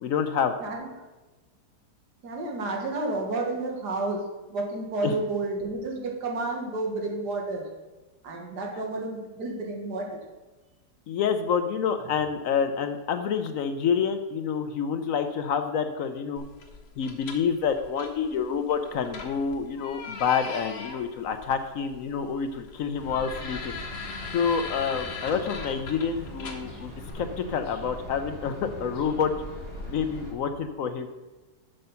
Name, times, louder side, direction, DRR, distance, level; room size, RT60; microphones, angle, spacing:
voice 1, 0.0-0.5 5.0-5.2 11.1-16.4 17.0-23.8 24.3-29.3 29.9-31.1, left 6 dB, 65° left, 8 dB, 0.9 m, -28 dB
voice 2, 2.2-7.7 8.2-10.2, right 2 dB, 85° right, 0 dB, 2.1 m, -31 dB
sound 1, 16.4-27.1, left 5 dB, 90° left, 1.6 m, -41 dB
sound 2, 22.9-30.3, equal, 45° right, 3.0 m, -41 dB
7.8 x 6.6 x 5.6 m, 1.2 s
omnidirectional pair, 1.7 m